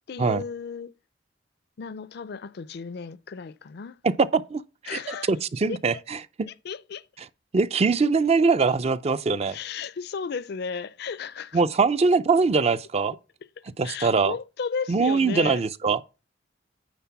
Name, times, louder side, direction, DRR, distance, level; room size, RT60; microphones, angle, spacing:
voice 1, 0.1-0.9 1.8-4.0 4.9-5.3 5.7-5.8 6.5-7.0 9.5-11.6 13.8-15.6, left 5 dB, 60° left, 0.4 m, -34 dB
voice 2, 4.0-4.6 4.9-6.2 7.5-9.6 11.5-13.2 13.8-14.3 14.9-16.0, right 4 dB, 35° right, 0.4 m, -22 dB
9.4 x 4.0 x 5.8 m
head